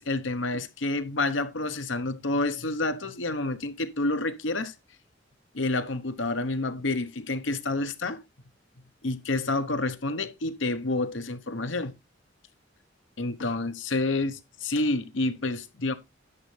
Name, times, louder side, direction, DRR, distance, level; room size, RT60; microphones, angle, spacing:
voice 1, 0.0-4.7 5.5-8.2 9.0-11.9 13.2-15.9, left 2 dB, 75° left, 1.1 m, -29 dB
11.0 x 7.4 x 3.3 m
head